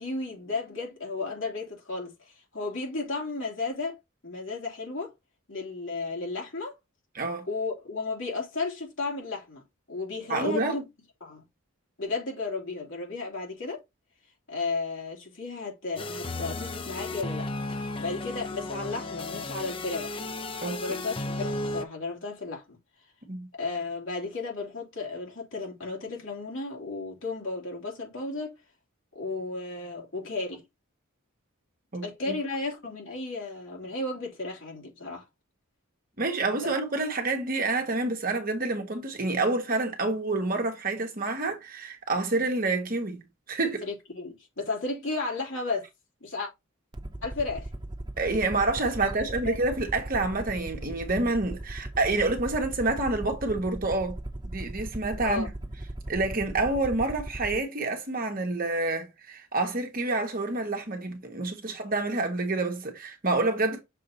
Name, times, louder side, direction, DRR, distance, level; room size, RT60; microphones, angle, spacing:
voice 1, 0.0-5.1 5.5-6.7 7.5-10.9 11.2-11.4 12.0-13.8 14.5-20.2 20.6-22.8 23.5-28.5 29.1-30.6 32.0-35.2 36.6-36.7 43.8-45.9 46.2-46.5 47.2-47.7 49.0-49.1 49.4-49.6 55.2-55.5 61.7-61.8, left 3 dB, 60° left, 3.1 m, -34 dB
voice 2, 10.3-10.8 20.6-21.0 23.3-23.5 31.9-32.4 36.2-43.8 48.2-55.5 56.1-63.8, right 2 dB, 40° right, 1.4 m, -28 dB
sound 1, 16.0-21.8, left 2 dB, 25° left, 0.5 m, -34 dB
Aircraft, 46.9-57.6, right 1 dB, 20° right, 0.7 m, -38 dB
6.7 x 3.7 x 3.9 m
head